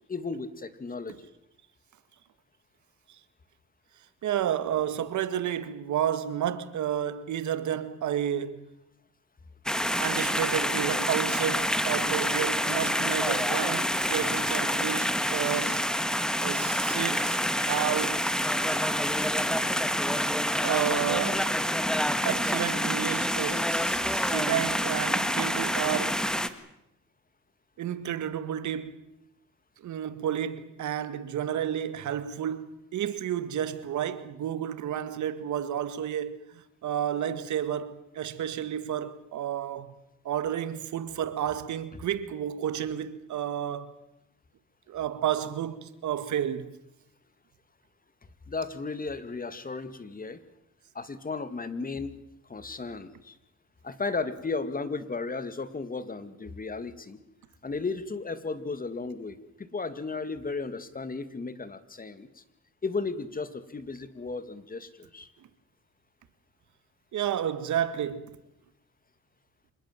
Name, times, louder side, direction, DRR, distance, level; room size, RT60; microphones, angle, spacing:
voice 1, 0.1-1.3 48.5-50.4 50.9-52.2 52.5-53.4 53.8-57.2 57.6-62.4 62.8-65.3, left 4 dB, 30° left, 2.3 m, -35 dB
voice 2, 4.2-8.7 10.0-15.8 16.4-18.2 20.6-21.5 22.2-26.3 27.8-29.0 29.8-40.0 40.2-44.0 44.9-46.7 65.4-65.5 67.1-68.4, right 10 dB, 70° right, 1.9 m, -31 dB
sound 1, 9.7-26.5, equal, ahead, 1.8 m, -27 dB
26.5 x 20.5 x 7.5 m
cardioid pair, 90°, 30 cm